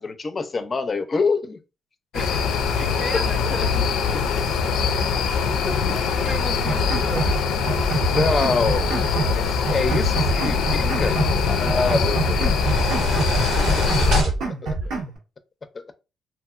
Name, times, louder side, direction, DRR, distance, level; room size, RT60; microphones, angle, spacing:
voice 1, 0.0-1.6 3.1-3.2 5.7-6.0 8.0-9.0 9.3-11.2 11.5-12.5 13.5-14.3 14.6-14.8 15.7-15.9, left 4 dB, 35° left, 0.5 m, -26 dB
sound 1, 2.1-14.2, left 5 dB, 85° left, 0.4 m, -23 dB
voice 2, 2.1-2.4 2.8-4.4 5.7-5.8 6.1-7.4 14.6-15.0, right 2 dB, 20° right, 0.6 m, -35 dB
sound 2, 6.5-7.4 7.7-9.4 9.7-11.4 11.7-13.4 13.7-15.1, right 3 dB, 90° right, 1.1 m, -26 dB
sound 3, 8.7-14.3, right 1 dB, 70° right, 1.0 m, -31 dB
2.8 x 2.6 x 2.4 m
cardioid pair, 90°, 0 cm